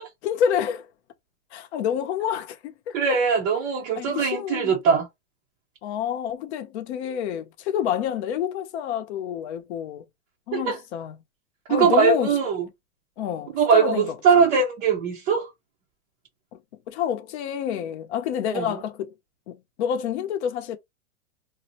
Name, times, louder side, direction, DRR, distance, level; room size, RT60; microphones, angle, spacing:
voice 1, 0.2-0.9 1.5-3.2 4.0-4.8 5.8-10.0 10.5-11.2 11.7-12.3 13.2-14.1 16.5-16.6 16.9-19.1 19.5-20.8, left 9 dB, 50° left, 0.7 m, -28 dB
voice 2, 2.9-5.1 10.5-10.8 11.7-12.6 13.5-15.5 18.5-18.8, right 6 dB, 25° right, 0.5 m, -21 dB
2.6 x 2.1 x 2.7 m
hypercardioid pair, 140°, 41 cm